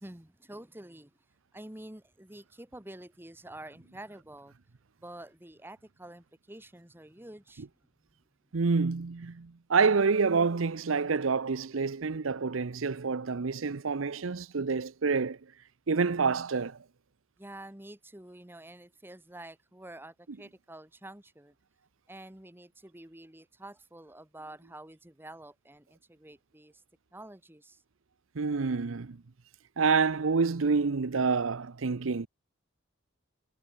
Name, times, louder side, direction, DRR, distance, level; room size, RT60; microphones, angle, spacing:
voice 1, 0.0-1.1 1.5-4.5 5.0-7.7 17.4-21.5 22.1-26.8 27.1-27.8, right 1 dB, 10° right, 1.6 m, -48 dB
voice 2, 8.5-15.4 15.9-16.8 28.3-29.2 29.8-32.3, right 4 dB, 90° right, 0.7 m, -27 dB
head